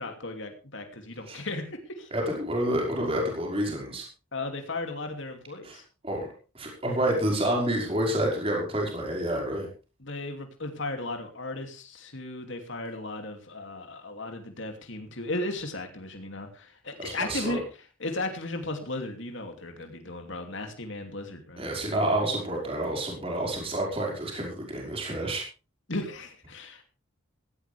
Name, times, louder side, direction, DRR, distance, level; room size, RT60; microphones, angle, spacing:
voice 1, 0.0-2.1 4.3-5.8 10.0-17.6 18.0-21.6 25.9-26.8, left 2 dB, 60° left, 4 dB, 2.8 m, -35 dB
voice 2, 2.1-4.0 5.6-6.3 6.5-9.7 17.0-17.6 21.6-25.4, right 1 dB, 25° right, -1 dB, 5.4 m, -29 dB
16.5 x 16.0 x 3.5 m, 0.33 s
head